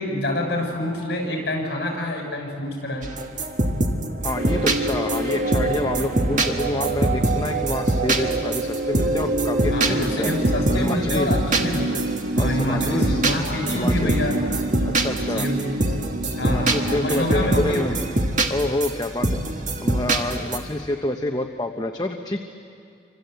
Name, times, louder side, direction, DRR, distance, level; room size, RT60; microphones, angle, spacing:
voice 1, 0.0-3.1 9.7-12.0 12.3-14.5 15.3-15.8 16.3-18.0, left 1 dB, 60° left, 1 dB, 7.0 m, -27 dB
sound 1, 3.0-20.6, right 1 dB, 45° right, 1.7 m, -25 dB
voice 2, 4.2-10.3 10.7-11.3 12.4-13.2 13.7-14.1 15.0-15.4 16.2-18.0 18.5-19.3 19.8-22.4, left 1 dB, 20° left, 4 dB, 0.9 m, -27 dB
sound 2, 4.4-18.1, right 2 dB, 70° right, 1.5 m, -28 dB
sound 3, 5.6-7.4, left 1 dB, 10° right, 6.2 m, -35 dB
28.5 x 25.5 x 8.1 m, 2.4 s
head